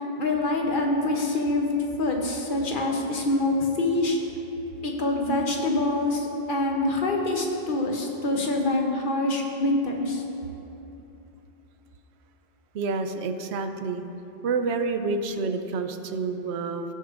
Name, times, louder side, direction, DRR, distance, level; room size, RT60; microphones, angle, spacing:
voice 1, 0.2-1.7 2.0-4.2 4.8-10.2, left 2 dB, 55° left, 1 dB, 1.0 m, -25 dB
voice 2, 12.7-14.0 14.4-16.8, right 4 dB, 90° right, 8 dB, 0.9 m, -28 dB
17.0 x 6.8 x 2.5 m, 3.0 s
omnidirectional pair, 1.1 m